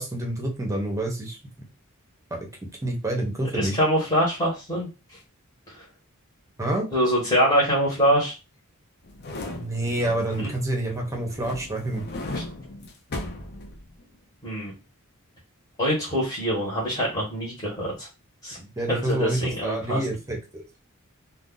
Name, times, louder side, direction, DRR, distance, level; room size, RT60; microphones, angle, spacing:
voice 1, 0.0-1.4 2.8-3.8 6.6-6.9 9.5-12.0 18.6-20.6, right 1 dB, 15° right, 1 dB, 0.8 m, -28 dB
voice 2, 3.5-4.9 5.7-5.8 6.9-8.4 10.4-10.5 12.3-12.4 14.4-14.7 15.8-18.1 18.4-18.6 18.9-20.0, equal, 20° left, -4 dB, 1.2 m, -24 dB
sound 1, 9.0-10.7 11.1-14.2 14.5-14.6, left 2 dB, 50° left, 0.6 m, -37 dB
2.5 x 2.2 x 3.7 m, 0.28 s
head